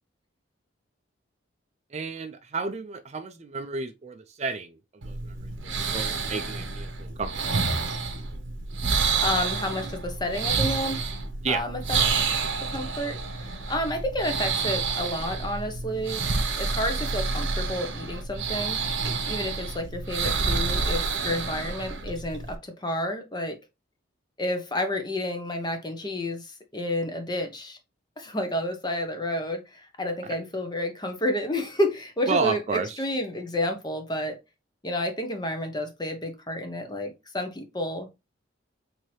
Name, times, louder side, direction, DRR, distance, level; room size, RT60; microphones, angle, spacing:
voice 1, 1.9-7.3 11.4-11.6 30.2-30.4 32.3-33.0, right 4 dB, 35° right, 0.4 m, -31 dB
sound 1, 5.0-22.5, right 4 dB, 75° right, 0.8 m, -29 dB
voice 2, 8.9-11.0 11.5-12.2 12.7-16.2 16.6-18.8 19.3-23.6 24.4-27.8 28.2-34.4 34.8-38.1, left 1 dB, 20° left, 0.7 m, -30 dB
4.5 x 2.8 x 3.0 m
head